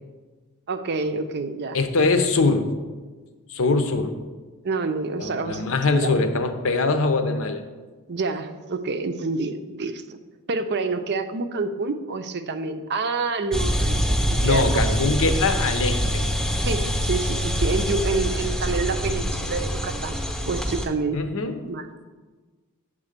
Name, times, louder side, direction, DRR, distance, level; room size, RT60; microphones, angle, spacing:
voice 1, 0.7-1.8 4.6-5.6 5.9-6.1 8.1-10.2 10.5-15.1 16.6-21.2 21.7-21.9, right 3 dB, 50° right, 9 dB, 0.6 m, -28 dB
voice 2, 1.7-2.7 3.5-4.2 5.2-7.6 14.4-16.3 18.4-18.5 21.1-21.6, left 3 dB, 65° left, 8 dB, 0.7 m, -22 dB
sound 1, 13.5-20.9, equal, 5° left, 0.8 m, -25 dB
8.8 x 3.7 x 6.6 m, 1.3 s
head